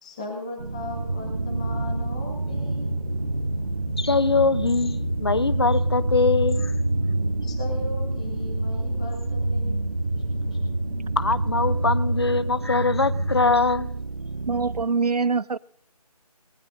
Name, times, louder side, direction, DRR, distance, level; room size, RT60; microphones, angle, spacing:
voice 1, 0.0-2.9 7.4-9.9 10.1-10.6, left 2 dB, 10° left, 1.0 m, -38 dB
sound 1, 0.6-14.8, right 4 dB, 50° right, 0.7 m, -34 dB
sound 2, 0.8-13.4, right 1 dB, 15° right, 2.4 m, -27 dB
voice 2, 4.0-6.7 11.2-13.9, left 4 dB, 40° left, 0.5 m, -22 dB
voice 3, 14.5-15.6, right 4 dB, 75° right, 0.5 m, -24 dB
19.0 x 18.5 x 2.6 m
figure-of-eight pair, 160°, 20 cm